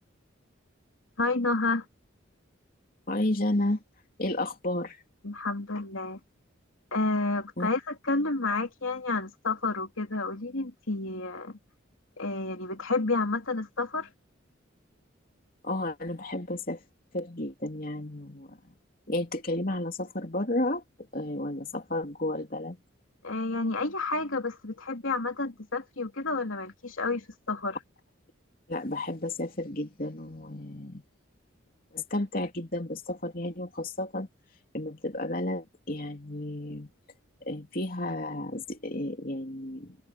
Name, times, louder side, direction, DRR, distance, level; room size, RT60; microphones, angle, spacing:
voice 1, 1.2-1.8 5.2-6.2 6.9-11.6 12.2-14.1 23.2-27.8, left 3 dB, 90° left, 3.0 m, -30 dB
voice 2, 3.1-3.8 4.2-5.0 7.6-7.7 15.6-16.8 17.1-18.6 19.1-20.8 21.1-22.8 28.7-31.0 31.9-34.3 34.7-36.9 37.4-40.0, left 1 dB, 45° left, 3.1 m, -32 dB
head